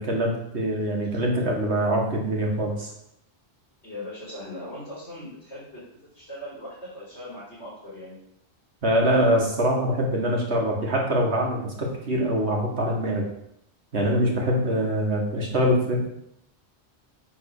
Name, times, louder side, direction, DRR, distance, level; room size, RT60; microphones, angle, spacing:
voice 1, 0.0-2.9 8.8-13.3 13.9-16.0, equal, 75° right, -1 dB, 2.0 m, -24 dB
voice 2, 3.8-5.8 6.1-8.2, left 1 dB, 80° left, -11 dB, 4.0 m, -39 dB
8.2 x 3.7 x 6.5 m, 0.77 s
omnidirectional pair, 1.1 m